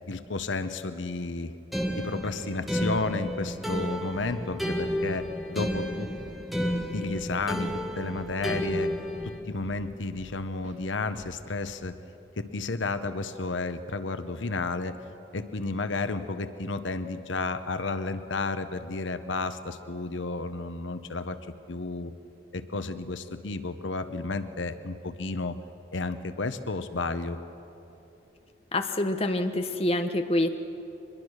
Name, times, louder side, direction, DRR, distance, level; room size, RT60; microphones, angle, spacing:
voice 1, 0.1-1.5 1.9-5.2 5.5-6.1 6.9-7.7 7.9-8.9 9.2-11.9 12.4-14.9 15.3-21.4 21.7-22.1 22.5-25.6 25.9-27.4, left 3 dB, 80° left, 11 dB, 0.9 m, -32 dB
sound 1, 1.7-9.4, equal, ahead, 1.4 m, -31 dB
Drum kit / Drum, 4.6-4.9 5.1-5.4 5.6-8.8 9.1-10.4 10.6-10.8 11.1-11.5, equal, 70° right, 2.3 m, -50 dB
voice 2, 28.7-30.5, left 1 dB, 30° left, 7 dB, 0.9 m, -26 dB
24.0 x 21.5 x 6.5 m, 2.9 s
head